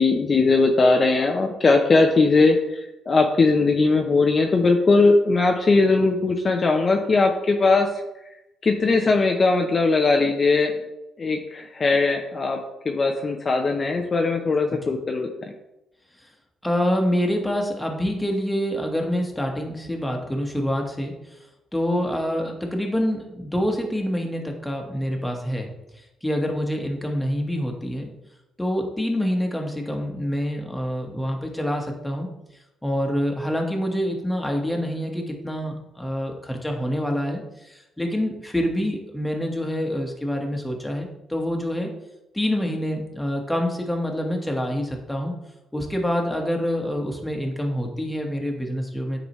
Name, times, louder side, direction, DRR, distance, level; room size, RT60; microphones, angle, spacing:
voice 1, 0.0-2.6 3.1-7.9 8.6-10.7 11.2-12.6 12.8-15.3, left 3 dB, 40° left, 3 dB, 0.6 m, -19 dB
voice 2, 16.6-21.1 21.7-25.7 26.2-28.1 28.6-32.3 32.8-41.9 42.3-45.3 45.7-49.2, equal, 10° left, 2 dB, 1.3 m, -26 dB
9.5 x 3.9 x 3.1 m, 0.93 s
cardioid pair, 90°, 0 cm